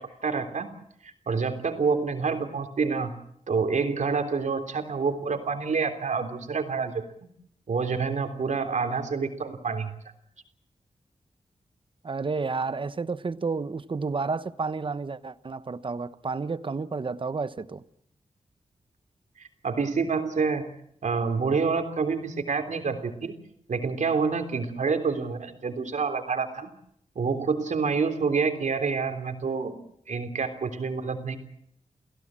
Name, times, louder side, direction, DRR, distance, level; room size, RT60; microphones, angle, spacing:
voice 1, 0.2-0.7 1.0-3.1 3.5-7.0 7.7-9.9 19.4-20.7 21.0-23.3 23.7-26.7 27.1-29.8 30.1-31.4, right 5 dB, 80° right, 3.4 m, -27 dB
voice 2, 12.0-17.8, right 4 dB, 45° right, 1.1 m, -31 dB
30.0 x 16.5 x 7.6 m
wide cardioid pair, 115°, 12 cm